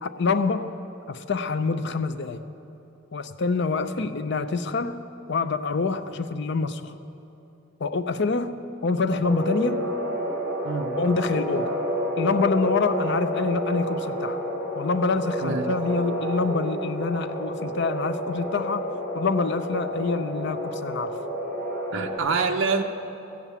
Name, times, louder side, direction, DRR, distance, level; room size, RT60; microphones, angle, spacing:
voice 1, 0.0-0.7 1.1-2.4 3.1-5.0 5.3-6.9 7.8-9.9 11.0-11.8 12.2-14.4 14.7-21.2, left 4 dB, 55° left, 11 dB, 0.5 m, -26 dB
sound 1, 9.2-22.2, equal, ahead, 2.8 m, -30 dB
voice 2, 21.9-22.8, right 4 dB, 70° right, 4 dB, 0.6 m, -25 dB
14.0 x 7.4 x 8.2 m, 3.0 s
head